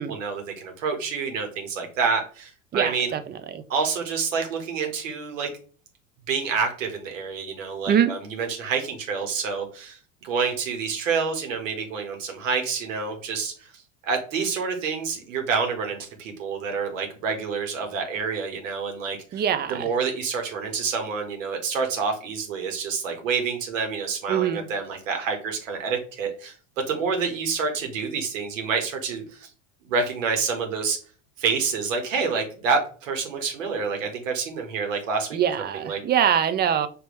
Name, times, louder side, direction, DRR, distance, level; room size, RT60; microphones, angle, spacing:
voice 1, 0.1-3.1 3.7-5.5 6.3-19.4 19.7-26.5 26.9-29.5 29.8-31.0 31.4-35.4 35.7-36.0, right 5 dB, 75° right, 1.5 m, -28 dB
voice 2, 2.7-3.2 3.5-3.6 7.9-8.1 19.3-19.9 24.3-24.7 35.3-36.9, right 9 dB, 25° right, 0.5 m, -23 dB
5.3 x 3.0 x 3.2 m
hypercardioid pair, 85°, 39 cm